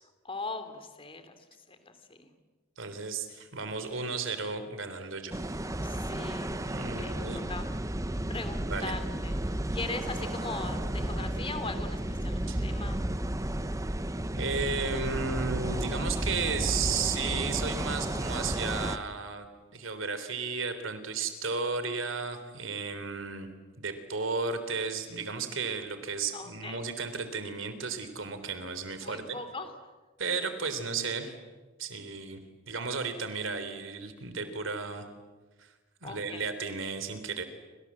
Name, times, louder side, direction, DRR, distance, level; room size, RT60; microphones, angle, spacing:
voice 1, 0.2-2.3 5.8-7.7 8.3-9.3 9.7-13.0 26.3-26.9 29.0-29.7 36.0-36.4, left 3 dB, 25° left, 9 dB, 2.9 m, -40 dB
voice 2, 2.8-5.3 6.6-7.5 8.7-8.9 12.5-12.6 14.4-23.5 23.8-29.4 30.2-31.3 31.8-32.4 32.7-35.1 35.6-35.7 36.0-37.4, right 4 dB, 70° right, 10 dB, 3.5 m, -34 dB
sound 1, 5.3-19.0, right 1 dB, 15° right, 0.9 m, -33 dB
28.5 x 26.5 x 7.5 m, 1.3 s
head